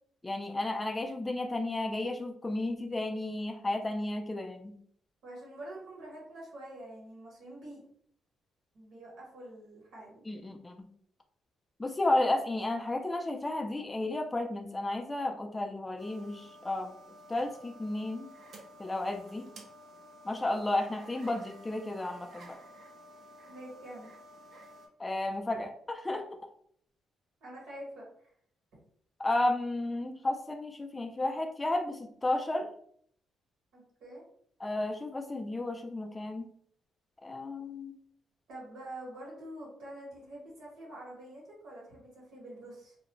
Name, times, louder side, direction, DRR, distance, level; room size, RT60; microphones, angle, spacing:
voice 1, 0.2-4.7 10.3-10.7 11.8-16.9 17.3-18.3 18.8-19.5 20.2-22.6 25.0-26.2 29.2-32.7 34.6-36.5 37.2-38.0, left 2 dB, 20° left, 5 dB, 0.3 m, -32 dB
voice 2, 5.2-7.8 8.7-10.2 23.5-24.1 27.4-28.3 33.7-34.2 38.5-42.9, right 1 dB, 80° right, -4 dB, 1.0 m, -46 dB
sound 1, 16.0-24.9, right 1 dB, 60° right, 0.6 m, -52 dB
2.5 x 2.1 x 2.9 m, 0.63 s
cardioid pair, 90°, 0 cm